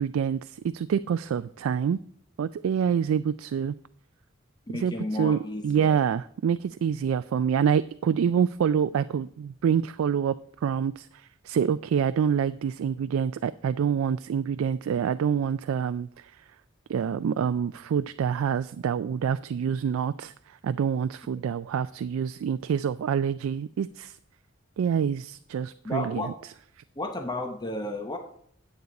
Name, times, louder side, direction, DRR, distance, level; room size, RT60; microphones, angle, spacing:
voice 1, 0.0-2.0 2.4-3.7 4.7-10.3 10.6-16.3 16.9-24.2 24.8-26.3, right 7 dB, 70° right, 13 dB, 0.3 m, -26 dB
voice 2, 4.7-6.0 25.8-26.3 27.0-28.2, left 1 dB, 20° left, 4 dB, 0.8 m, -33 dB
9.3 x 8.0 x 4.1 m, 0.66 s
head